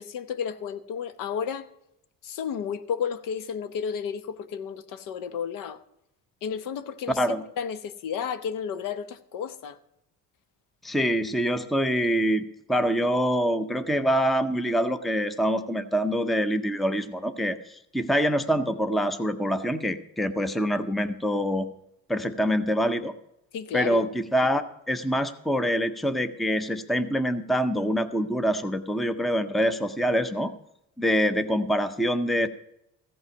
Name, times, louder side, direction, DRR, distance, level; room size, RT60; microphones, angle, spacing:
voice 1, 0.0-1.7 2.2-5.8 6.4-9.8 23.5-24.1, left 7 dB, 75° left, 0.9 m, -32 dB
voice 2, 10.8-21.7 22.1-23.1 23.7-30.5 31.0-32.5, equal, ahead, 0.5 m, -25 dB
15.0 x 5.5 x 7.1 m
cardioid pair, 150°, 33 cm